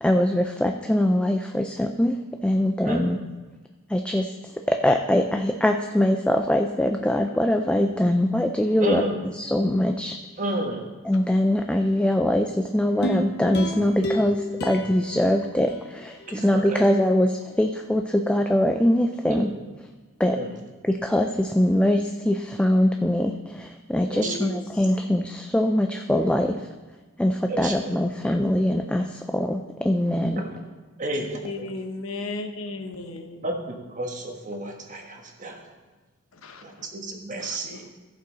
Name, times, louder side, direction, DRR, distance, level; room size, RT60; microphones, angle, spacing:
voice 1, 0.0-2.2 2.4-3.2 3.9-9.0 9.3-10.2 11.0-19.5 20.2-20.4 20.8-26.6 27.2-30.4, left 1 dB, 5° left, 5 dB, 0.3 m, -22 dB
voice 2, 8.8-9.2 10.4-10.9 16.3-16.8 19.3-19.5 20.3-20.5 24.1-24.4 27.5-27.8 30.4-30.5 31.0-31.4 33.4-35.6 36.6-37.8, right 1 dB, 40° right, 2 dB, 1.3 m, -31 dB
sound 1, 13.0-16.3 16.8-16.9, equal, 55° left, 1.0 m, -32 dB
voice 3, 24.1-24.9 31.2-33.5 36.3-36.9 37.4-37.9, left 2 dB, 80° left, 6 dB, 0.9 m, -36 dB
15.0 x 5.4 x 4.0 m, 1.3 s
head